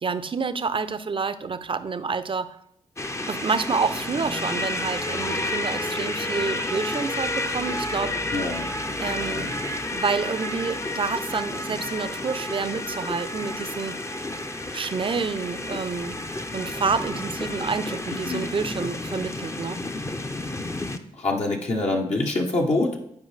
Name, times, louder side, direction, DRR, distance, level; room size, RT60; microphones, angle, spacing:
voice 1, 0.0-2.6 3.3-8.2 9.0-14.0 14.7-16.2 16.5-19.8, right 5 dB, 40° right, 12 dB, 0.6 m, -28 dB
sound 1, 3.0-21.0, left 2 dB, 20° left, 0.7 m, -31 dB
voice 2, 8.3-8.7 18.2-18.4 21.1-23.0, left 2 dB, 55° left, 0 dB, 1.1 m, -25 dB
10.5 x 4.6 x 3.3 m, 0.73 s
supercardioid pair, 40°, 14 cm